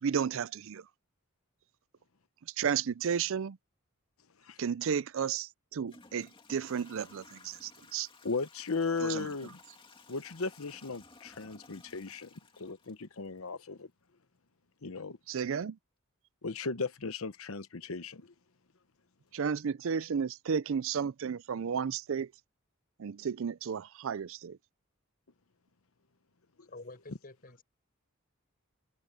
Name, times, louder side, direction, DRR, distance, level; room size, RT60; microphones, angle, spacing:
voice 1, 0.0-0.8 2.6-3.6 4.6-8.1 9.0-9.3 15.3-15.8 19.3-22.3 23.0-24.6, right 7 dB, 65° right, 0.4 m, -33 dB
Toilet flush / Trickle dribble, 5.0-5.1 5.8-13.6, left 3 dB, 25° left, 2.4 m, -57 dB
voice 2, 8.2-9.6 10.1-12.3 12.6-13.9 14.8-15.2 16.4-18.3 26.6-26.7, left 4 dB, 75° left, 1.0 m, -36 dB
voice 3, 26.7-27.6, left 2 dB, 45° left, 7.6 m, -48 dB
head